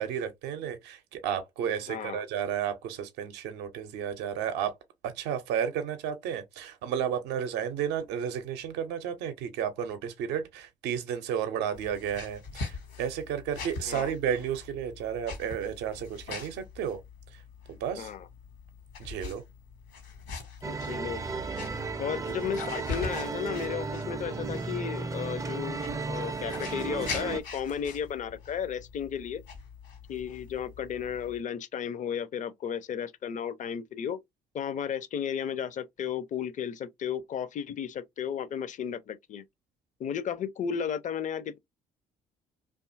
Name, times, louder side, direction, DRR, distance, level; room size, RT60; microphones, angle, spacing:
voice 1, 0.0-4.7 5.2-17.0 17.8-18.1 19.0-19.4, right 8 dB, 70° right, 0.5 m, -32 dB
voice 2, 1.9-2.2 13.8-14.1 18.0-18.3 20.7-21.2 22.0-29.4 30.1-34.2 34.5-39.4 40.0-41.6, left 8 dB, 45° left, 0.5 m, -34 dB
sound 1, 11.7-31.4, left 4 dB, 70° left, 1.1 m, -43 dB
sound 2, 20.6-27.4, right 4 dB, 20° right, 0.4 m, -34 dB
2.6 x 2.3 x 2.4 m
hypercardioid pair, 50°, 18 cm